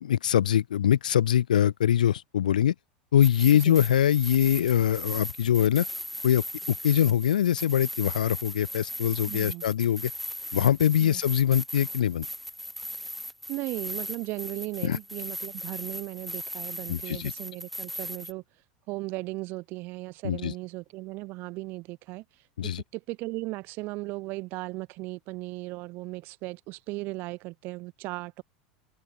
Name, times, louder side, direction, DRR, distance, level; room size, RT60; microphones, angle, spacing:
voice 1, 0.0-2.7 3.1-5.9 6.2-6.4 6.8-10.1 10.5-12.3 14.8-15.0 16.9-17.3 20.2-20.5 22.6-22.8, left 10 dB, 85° left, 2.4 m, -23 dB
sound 1, 3.2-18.3, equal, ahead, 2.1 m, -38 dB
voice 2, 9.3-9.6 11.0-11.2 13.5-18.4 18.9-22.2 22.7-28.4, right 22 dB, 55° right, 2.9 m, -36 dB
open air
hypercardioid pair, 90°, 4 cm